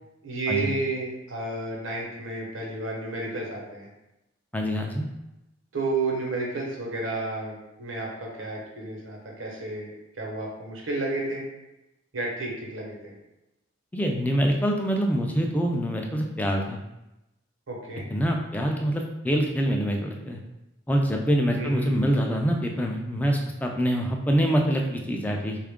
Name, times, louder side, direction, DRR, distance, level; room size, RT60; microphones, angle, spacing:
voice 1, 0.2-3.9 5.7-11.4 12.1-13.1 17.7-18.0 21.6-21.9, right 2 dB, 75° right, -2 dB, 0.9 m, -31 dB
voice 2, 4.5-5.1 13.9-16.8 18.1-20.4 20.9-25.6, equal, 10° left, 1 dB, 0.3 m, -25 dB
3.6 x 2.4 x 3.5 m, 0.94 s
head